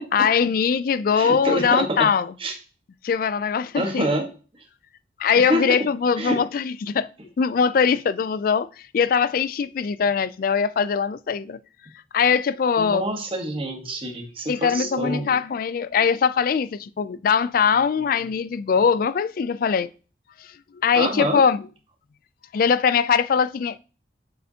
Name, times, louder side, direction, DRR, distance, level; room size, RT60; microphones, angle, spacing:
voice 1, 0.1-2.3 3.0-4.1 5.2-7.1 7.4-8.7 8.9-11.6 12.1-13.0 14.5-19.9 20.8-21.6 22.5-23.8, left 6 dB, 50° left, 0.3 m, -21 dB
voice 2, 1.1-2.1 2.4-2.5 3.7-4.3 5.4-5.8 6.2-6.4 12.8-15.3 20.9-21.4, right 1 dB, 30° right, 1.3 m, -26 dB
7.6 x 6.6 x 2.8 m
head